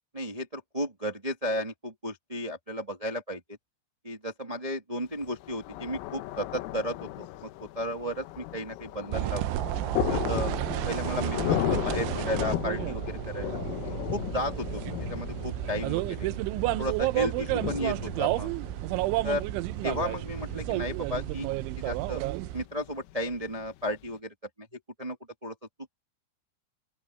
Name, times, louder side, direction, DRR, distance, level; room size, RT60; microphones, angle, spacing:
voice 1, 0.1-3.4 4.0-9.5 10.1-10.5 10.8-16.3 16.8-18.5 19.2-19.4 19.8-21.5 21.8-22.2 22.5-24.7 25.0-25.2 25.4-25.5, equal, 20° right, 0.8 m, -34 dB
Thunder, 5.2-24.1, left 16 dB, 90° left, 3.8 m, -36 dB
sound 1, 9.1-22.6, right 17 dB, 85° right, 2.9 m, -31 dB
open air
omnidirectional pair, 5.8 m